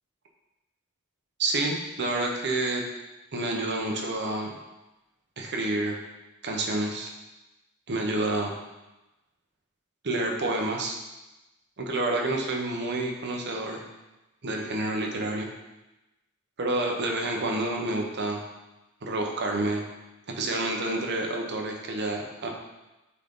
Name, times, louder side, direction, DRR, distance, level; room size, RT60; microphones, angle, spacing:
voice 1, 1.4-2.8 3.3-4.5 5.4-6.0 6.4-7.1 7.9-8.5 10.0-10.9 11.8-13.8 14.4-15.5 16.6-18.4 19.0-19.8 20.3-22.5, right 2 dB, 55° right, 1 dB, 1.0 m, -28 dB
8.2 x 4.0 x 3.8 m, 1.0 s
head